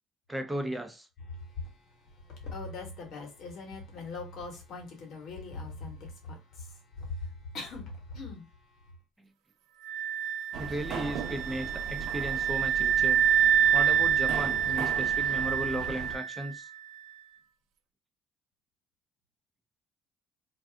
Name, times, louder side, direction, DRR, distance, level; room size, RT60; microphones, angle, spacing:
voice 1, 0.3-1.1 10.6-13.2 13.7-16.7, right 1 dB, 10° right, 0.7 m, -36 dB
voice 2, 2.4-6.0 6.3-6.4 7.5-8.4, left 3 dB, 65° left, 1.4 m, -41 dB
sound 1, 9.8-16.6, right 9 dB, 85° right, 0.4 m, -27 dB
sound 2, 10.5-16.2, right 5 dB, 65° right, 0.7 m, -39 dB
2.6 x 2.3 x 3.4 m
cardioid pair, 90°, 0 cm